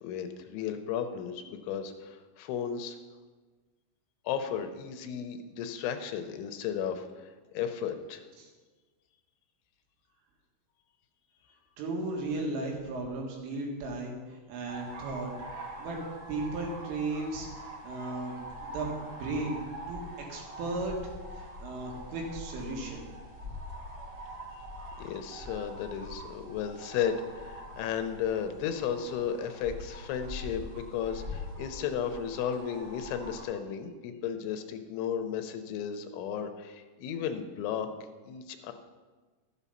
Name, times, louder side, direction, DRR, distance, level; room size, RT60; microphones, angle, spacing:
voice 1, 0.0-3.0 4.3-8.2 24.6-24.7 25.0-37.9 38.2-38.7, left 8 dB, 85° left, 7 dB, 3.1 m, -34 dB
voice 2, 11.8-15.3 15.6-16.0 16.3-17.5 17.8-20.0 20.3-20.9 21.3-23.0, right 2 dB, 85° right, 0 dB, 4.4 m, -35 dB
sound 1, 14.7-33.4, equal, 45° right, 1.5 m, -44 dB
12.5 x 8.3 x 5.6 m, 1.3 s
omnidirectional pair, 5.5 m